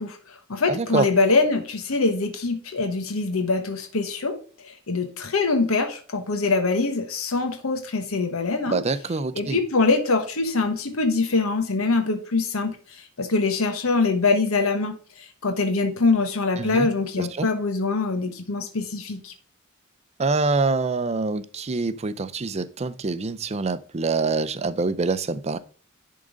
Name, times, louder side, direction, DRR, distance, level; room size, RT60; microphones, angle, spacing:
voice 1, 0.0-4.3 4.6-8.8 9.3-19.3, left 3 dB, 85° left, 1.1 m, -24 dB
voice 2, 0.7-1.1 8.7-9.6 16.6-16.9 17.2-17.5 20.2-25.6, right 3 dB, 30° right, 0.5 m, -25 dB
10.5 x 3.8 x 5.0 m
head